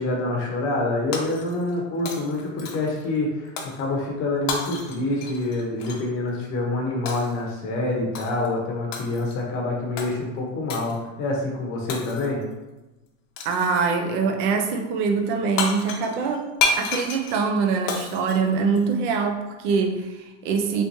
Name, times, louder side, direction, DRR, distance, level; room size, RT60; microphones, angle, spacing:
voice 1, 0.0-12.5, left 2 dB, 35° left, -1 dB, 0.8 m, -26 dB
Shatter, 1.1-1.8 2.1-3.0 3.6-3.8 4.5-6.1 7.1-7.4 8.1-8.5 8.9-9.4 10.0-10.1 10.7-11.0 11.9-12.4 13.4-13.7 15.3-15.4 15.6-19.2, left 4 dB, 75° left, 0.7 m, -30 dB
voice 2, 13.4-20.8, right 5 dB, 40° right, 4 dB, 0.5 m, -24 dB
3.4 x 3.0 x 2.6 m, 1.1 s
supercardioid pair, 155°, 38 cm